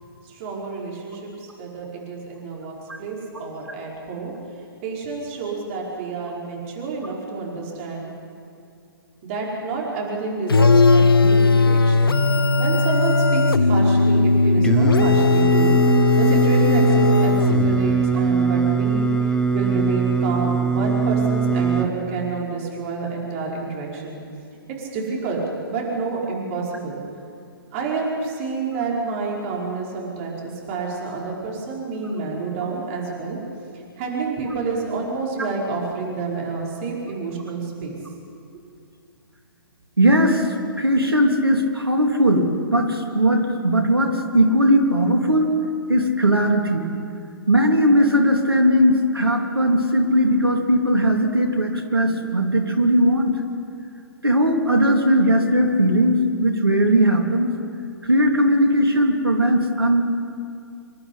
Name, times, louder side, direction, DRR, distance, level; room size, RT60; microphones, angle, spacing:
voice 1, 0.2-4.3 4.8-8.1 9.2-12.2 12.6-24.2 24.7-25.4 25.7-27.0 27.7-33.4 33.7-38.0, right 4 dB, 35° right, -3 dB, 5.0 m, -29 dB
sound 1, 10.5-18.0, left 3 dB, 75° left, 0.7 m, -17 dB
Singing, 14.6-21.9, right 5 dB, 5° left, 1.1 m, -21 dB
voice 2, 40.0-40.5 40.8-45.5 45.9-46.9 47.5-53.4 54.2-57.5 58.0-60.0, equal, 80° right, 3 dB, 3.1 m, -18 dB
27.0 x 11.5 x 10.0 m, 2.4 s
figure-of-eight pair, 125°, 12 cm